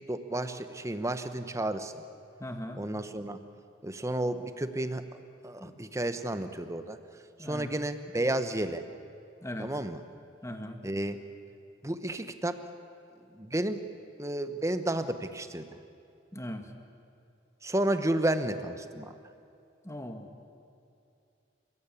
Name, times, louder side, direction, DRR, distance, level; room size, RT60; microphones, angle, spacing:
voice 1, 0.1-2.0 2.8-3.4 3.8-5.0 5.4-7.0 7.4-8.8 9.6-10.0 10.8-11.2 11.8-12.6 13.3-13.8 14.2-15.7 17.6-19.1, right 1 dB, 15° right, 10 dB, 1.1 m, -31 dB
voice 2, 2.4-2.8 5.6-5.7 7.4-7.8 9.4-9.7 10.4-10.8 16.3-16.7 19.8-20.3, left 1 dB, 15° left, 6 dB, 1.7 m, -39 dB
29.0 x 16.5 x 8.6 m, 2.6 s
head